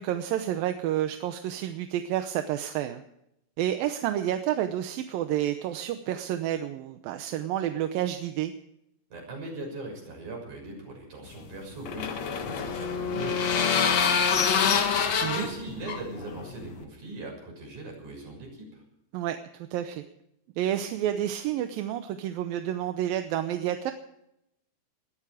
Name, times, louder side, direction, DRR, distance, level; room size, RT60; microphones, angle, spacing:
voice 1, 0.0-3.0 3.6-8.5 15.2-15.5 19.1-20.0 20.6-23.9, right 11 dB, 75° right, 8 dB, 2.5 m, -30 dB
voice 2, 9.1-18.8, right 2 dB, 55° right, 0 dB, 8.0 m, -40 dB
sound 1, 11.3-16.8, left 6 dB, 55° left, 2.5 m, -26 dB
21.5 x 13.5 x 4.9 m, 0.80 s
omnidirectional pair, 4.3 m